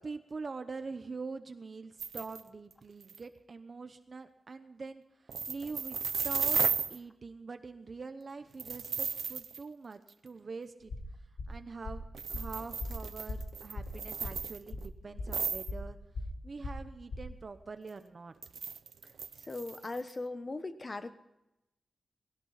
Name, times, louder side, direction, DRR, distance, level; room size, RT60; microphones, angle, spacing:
voice 1, 0.0-5.0 5.5-6.0 6.2-6.6 6.9-10.9 11.5-12.0 12.3-16.0 16.4-18.3, right 4 dB, 45° right, 8 dB, 0.9 m, -44 dB
sound 1, 2.0-2.4 2.7-2.8 3.0-3.2 5.3-7.0 8.6-9.6 10.1-10.2 12.1-14.9 15.3-15.7 18.4-20.1, right 6 dB, 90° right, 0.6 m, -35 dB
sound 2, 10.8-17.5, left 2 dB, 85° left, 3.5 m, -41 dB
voice 2, 19.4-21.1, left 2 dB, 30° left, 10 dB, 1.1 m, -39 dB
19.0 x 17.5 x 4.1 m, 0.91 s
wide cardioid pair, 150°, 0 cm